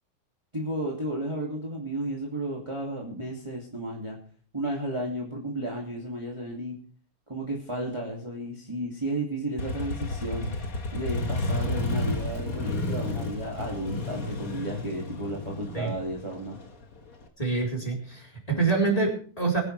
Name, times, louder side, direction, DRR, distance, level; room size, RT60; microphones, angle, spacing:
voice 1, 0.5-4.2 4.5-6.8 7.3-10.5 10.9-16.6, right 1 dB, 10° right, -2 dB, 1.4 m, -33 dB
Motorcycle, 9.6-17.2, left 2 dB, 65° left, 0.8 m, -31 dB
voice 2, 17.4-19.6, right 4 dB, 10° left, -1 dB, 3.4 m, -26 dB
22.5 x 10.5 x 3.3 m, 0.43 s
omnidirectional pair, 4.3 m